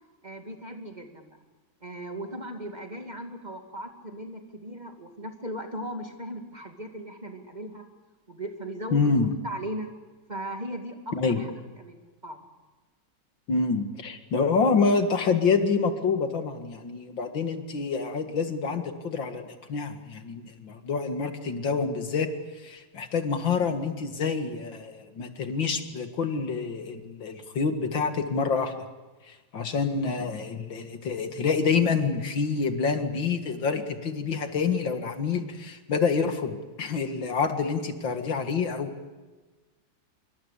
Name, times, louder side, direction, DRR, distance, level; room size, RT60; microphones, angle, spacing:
voice 1, 0.2-1.4 1.8-7.8 8.3-9.1 9.4-9.9 10.3-11.5 11.8-12.4, right 1 dB, 20° right, 4 dB, 2.4 m, -37 dB
voice 2, 8.9-9.3 11.1-11.4 13.5-22.3 22.6-28.7 29.3-38.9, left 5 dB, 70° left, 7 dB, 2.6 m, -27 dB
26.0 x 23.5 x 8.3 m, 1.2 s
omnidirectional pair, 2.1 m